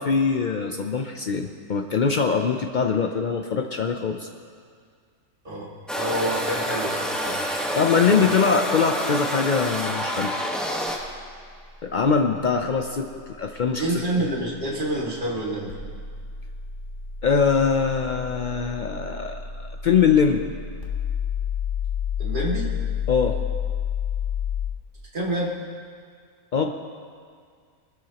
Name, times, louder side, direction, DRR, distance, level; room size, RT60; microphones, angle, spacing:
voice 1, 0.0-4.3 7.8-10.3 11.8-13.1 13.4-14.0 17.2-20.5 23.1-23.4 26.5-26.7, left 6 dB, 90° left, 4 dB, 0.4 m, -22 dB
voice 2, 5.4-7.4 8.0-8.4 13.8-15.7 22.2-22.7 25.1-25.5, right 1 dB, 35° right, -4 dB, 2.3 m, -28 dB
sound 1, 5.9-11.0, equal, ahead, 1.1 m, -27 dB
sound 2, 10.9-24.7, left 8 dB, 35° left, 1.7 m, -32 dB
21.0 x 12.5 x 2.9 m, 2.1 s
omnidirectional pair, 1.6 m